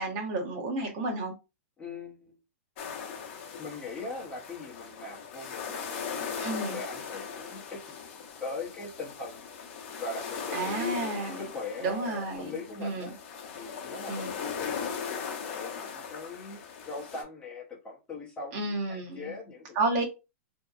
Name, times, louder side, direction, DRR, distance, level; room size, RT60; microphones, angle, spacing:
voice 1, 0.0-1.3 6.4-6.8 10.5-11.4 11.8-12.5 12.8-13.1 14.1-14.3 18.5-19.3 19.7-20.0, right 2 dB, 40° right, 0.9 m, -31 dB
voice 2, 1.8-2.4 3.6-6.5 6.7-8.0 8.4-9.5 10.0-13.2 13.5-19.6, left 3 dB, 15° left, 0.8 m, -41 dB
sound 1, 2.8-17.2, left 6 dB, 50° left, 0.7 m, -39 dB
2.7 x 2.1 x 2.4 m
hypercardioid pair, 150°, 8 cm